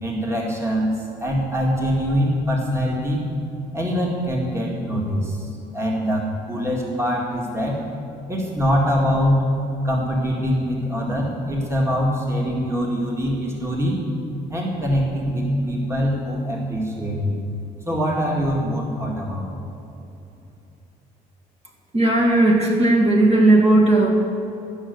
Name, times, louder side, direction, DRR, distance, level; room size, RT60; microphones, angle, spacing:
voice 1, 0.0-3.2 3.7-7.8 8.3-9.4 9.8-14.1 14.5-17.4 17.9-19.6, equal, 15° right, -2 dB, 2.1 m, -23 dB
voice 2, 21.9-24.1, right 2 dB, 40° right, -1 dB, 2.2 m, -16 dB
12.5 x 6.5 x 9.4 m, 2.7 s
cardioid pair, 110°, 17 cm